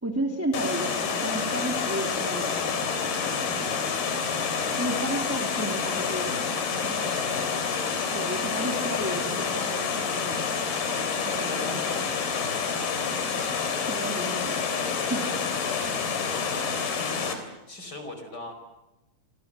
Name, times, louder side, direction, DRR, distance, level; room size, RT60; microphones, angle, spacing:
voice 1, 0.0-3.7 4.7-6.4 6.7-7.4 8.1-10.6 11.2-12.0 12.3-12.4 13.9-14.6 15.1-15.3, right 1 dB, 5° right, 2 dB, 2.1 m, -33 dB
Water, 0.5-17.3, left 6 dB, 85° left, 5.3 m, -28 dB
voice 2, 7.0-7.5 11.3-12.7 16.2-18.5, left 2 dB, 25° left, 7 dB, 5.3 m, -41 dB
28.5 x 26.0 x 7.6 m, 1.0 s
omnidirectional pair, 4.3 m